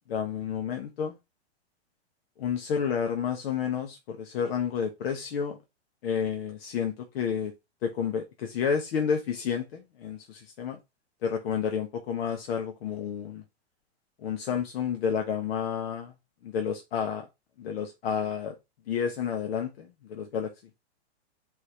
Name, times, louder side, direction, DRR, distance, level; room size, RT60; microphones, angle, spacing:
voice 1, 0.1-1.2 2.4-5.6 6.0-7.5 7.8-10.8 11.2-13.4 14.2-16.1 16.4-17.3 17.6-18.5 18.9-20.5, left 7 dB, 60° left, 1.3 m, -30 dB
5.1 x 4.0 x 5.8 m
hypercardioid pair, 150°, 34 cm